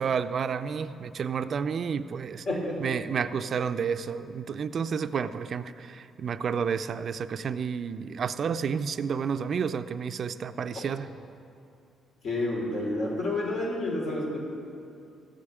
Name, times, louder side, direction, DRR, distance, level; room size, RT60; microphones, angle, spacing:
voice 1, 0.0-2.5 2.8-11.1, right 6 dB, 55° right, 11 dB, 0.4 m, -30 dB
voice 2, 2.4-2.9 10.7-10.9 12.2-14.4, left 2 dB, 60° left, -3 dB, 3.1 m, -29 dB
14.0 x 4.8 x 8.7 m, 2.5 s
cardioid pair, 90°, 0 cm